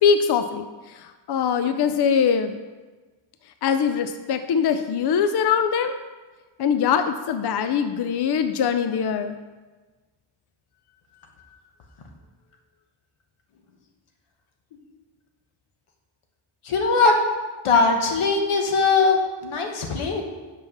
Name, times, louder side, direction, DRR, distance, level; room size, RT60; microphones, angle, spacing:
voice 1, 0.0-2.6 3.6-6.0 6.6-9.4, left 7 dB, 55° left, 9 dB, 0.5 m, -22 dB
voice 2, 16.6-17.2 17.6-20.2, left 4 dB, 90° left, 3 dB, 1.2 m, -20 dB
5.8 x 5.7 x 5.4 m, 1.3 s
wide cardioid pair, 100°, 49 cm